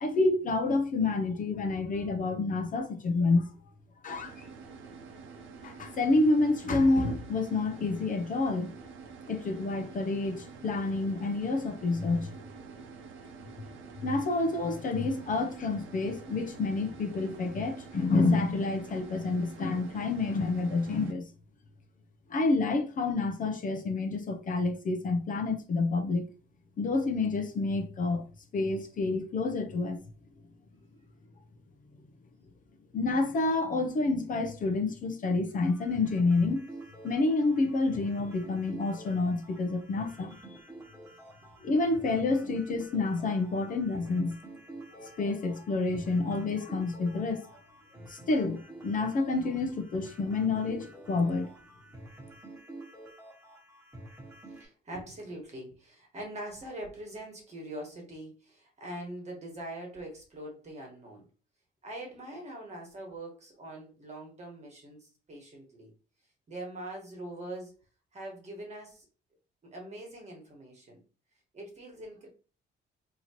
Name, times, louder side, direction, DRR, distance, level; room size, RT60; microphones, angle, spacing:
voice 1, 0.0-3.5 4.0-4.4 5.6-8.7 9.3-12.3 14.0-21.3 22.3-26.2 26.8-28.2 28.5-30.0 32.9-36.7 37.0-40.3 41.6-44.4 45.0-47.5 48.1-51.5, left 3 dB, 45° left, 0.6 m, -28 dB
sound 1, 4.1-21.1, right 5 dB, 80° right, 0.7 m, -48 dB
sound 2, 35.6-54.6, right 2 dB, 15° right, 1.3 m, -49 dB
voice 2, 54.5-61.3 61.8-65.9 66.5-67.7 68.1-69.1 69.6-71.0 71.5-72.3, right 1 dB, 35° right, 1.4 m, -43 dB
4.3 x 2.9 x 2.9 m
cardioid pair, 155°, 20 cm